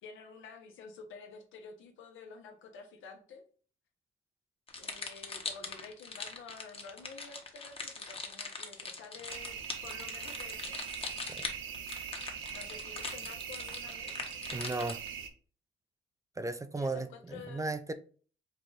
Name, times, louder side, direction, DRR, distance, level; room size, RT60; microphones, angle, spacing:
voice 1, 0.0-3.4 4.8-10.8 12.5-14.1 16.7-17.8, left 5 dB, 85° left, 1.1 m, -50 dB
sound 1, 4.7-15.1, left 4 dB, 30° left, 1.0 m, -41 dB
sound 2, 9.3-15.3, right 7 dB, 80° right, 0.7 m, -42 dB
voice 2, 14.5-15.0 16.4-17.9, right 3 dB, 15° right, 0.4 m, -35 dB
4.7 x 2.5 x 3.9 m
cardioid pair, 90°, 20 cm